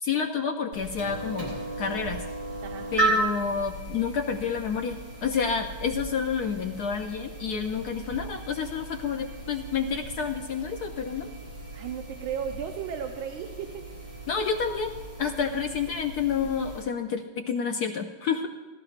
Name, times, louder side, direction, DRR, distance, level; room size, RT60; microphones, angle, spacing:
voice 1, 0.0-2.2 2.9-11.3 14.3-14.9 15.2-18.5, left 6 dB, 70° left, 4 dB, 0.9 m, -29 dB
sound 1, 0.7-16.8, right 2 dB, 55° right, 4.4 m, -35 dB
voice 2, 11.7-13.9 15.4-15.8, right 8 dB, 80° right, 5 dB, 1.5 m, -35 dB
18.5 x 14.5 x 2.5 m, 1.3 s
omnidirectional pair, 2.3 m